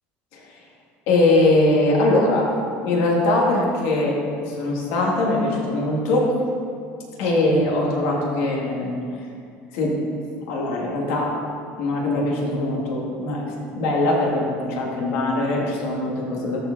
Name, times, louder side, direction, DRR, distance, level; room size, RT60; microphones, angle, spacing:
voice 1, 0.3-0.6 1.1-2.5 2.8-6.3 7.2-9.3 9.7-9.9 10.5-11.3 11.8-16.6, left 2 dB, 75° left, -3 dB, 2.2 m, -21 dB
13.5 x 4.8 x 3.9 m, 2.5 s
cardioid pair, 135°, 5 cm